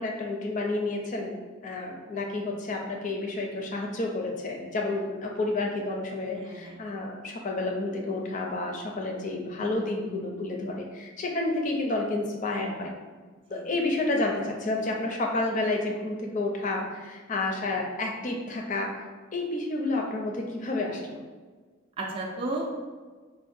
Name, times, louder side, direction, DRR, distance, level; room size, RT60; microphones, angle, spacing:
voice 1, 0.0-1.4 1.6-12.9 13.5-18.9 19.3-21.2, left 2 dB, 40° left, 0 dB, 0.5 m, -30 dB
voice 2, 6.3-6.8 9.6-9.8 13.5-13.7 22.0-22.7, right 2 dB, 25° right, -2 dB, 0.3 m, -34 dB
4.8 x 2.1 x 2.5 m, 1.4 s
head